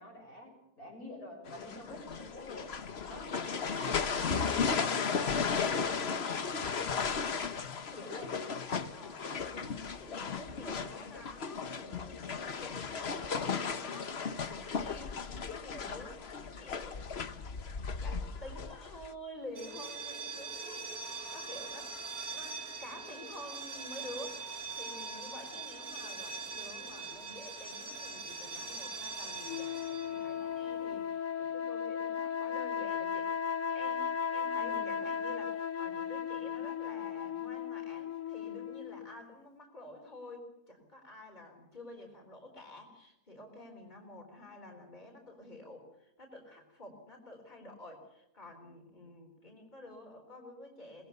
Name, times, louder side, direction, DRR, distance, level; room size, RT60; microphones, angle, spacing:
voice 1, 0.0-2.7 3.0-5.8 6.1-7.0 8.0-8.4 34.6-35.0, left 1 dB, 80° left, 0 dB, 7.4 m, -48 dB
sound 1, 1.5-19.1, left 5 dB, 50° left, 1.3 m, -35 dB
voice 2, 7.9-8.6 8.9-17.1 18.0-21.9 22.3-33.3 33.7-51.1, left 1 dB, 30° left, 2 dB, 4.1 m, -50 dB
sound 2, 19.5-31.2, right 4 dB, 80° right, 2.5 m, -42 dB
sound 3, 29.4-39.2, left 7 dB, 65° left, 1.3 m, -36 dB
22.5 x 20.5 x 6.9 m, 0.87 s
omnidirectional pair, 1.5 m